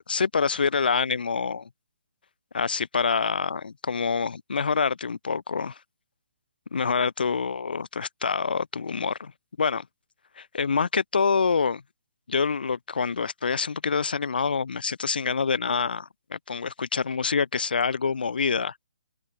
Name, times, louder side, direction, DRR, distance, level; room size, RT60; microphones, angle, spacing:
voice 1, 0.0-1.7 2.5-5.8 6.7-9.3 9.6-9.9 10.4-11.8 12.3-18.9, left 5 dB, 70° left, 2.6 m, -26 dB
figure-of-eight pair, 140°, 5 cm